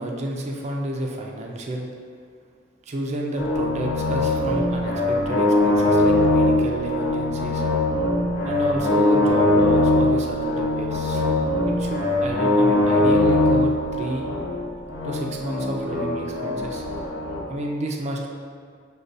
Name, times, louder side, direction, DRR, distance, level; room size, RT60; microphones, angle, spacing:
voice 1, 0.0-1.9 2.9-7.6 8.4-14.3 15.0-16.8 17.5-18.3, right 1 dB, 35° right, 0 dB, 0.4 m, -30 dB
sound 1, 3.4-17.4, left 1 dB, 60° left, 0.8 m, -21 dB
6.4 x 2.2 x 2.5 m, 2.1 s
head